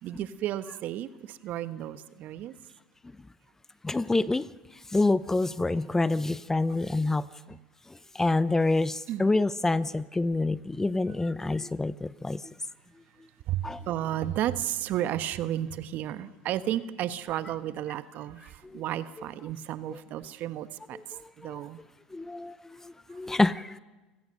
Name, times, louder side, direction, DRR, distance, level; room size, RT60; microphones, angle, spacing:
voice 1, 0.0-2.5 5.7-5.8 9.1-9.3 13.5-21.8, right 12 dB, 50° right, 12 dB, 1.2 m, -33 dB
voice 2, 3.8-4.5 4.9-7.3 8.1-12.4 13.6-13.8 18.7-18.8 20.9-21.6 22.1-22.6 22.8-23.8, left 2 dB, 10° left, 18 dB, 0.6 m, -27 dB
29.5 x 17.5 x 6.6 m, 1.2 s
hypercardioid pair, 85°, 4 cm